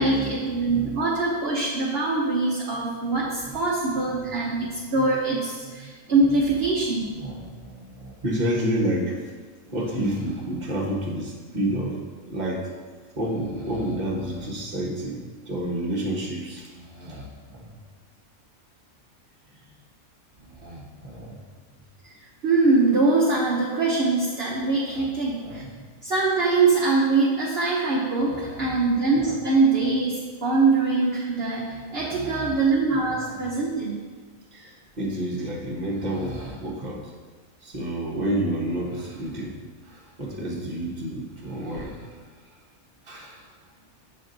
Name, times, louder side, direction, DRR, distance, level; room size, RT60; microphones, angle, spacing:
voice 1, 0.0-7.1 22.0-22.1 22.4-25.6 26.0-34.0, right 3 dB, 50° right, -4 dB, 1.1 m, -23 dB
voice 2, 0.7-1.0 3.4-3.5 4.1-4.3 6.1-6.3 7.2-9.2 9.7-12.0 12.3-12.7 13.1-15.2 15.5-17.7 19.5-19.7 20.4-21.4 24.6-25.1 25.4-25.9 28.2-28.8 29.1-29.4 31.7-32.6 32.9-33.3 34.5-37.1 37.6-39.6 39.8-42.2 43.0-43.5, right 1 dB, 30° right, -2 dB, 1.4 m, -30 dB
7.7 x 6.2 x 4.0 m, 1.5 s
omnidirectional pair, 1.5 m